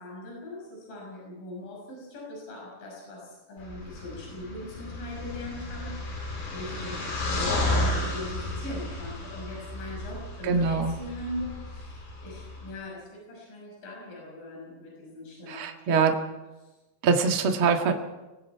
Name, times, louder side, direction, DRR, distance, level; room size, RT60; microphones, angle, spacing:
voice 1, 0.0-16.7, left 1 dB, 55° left, -3 dB, 7.7 m, -41 dB
sound 1, 3.6-12.7, left 1 dB, 75° left, 8.0 m, -33 dB
voice 2, 10.4-11.0 15.5-16.1 17.0-17.9, right 5 dB, 45° right, 3 dB, 1.8 m, -23 dB
30.0 x 20.0 x 4.7 m, 1.1 s
omnidirectional pair, 4.8 m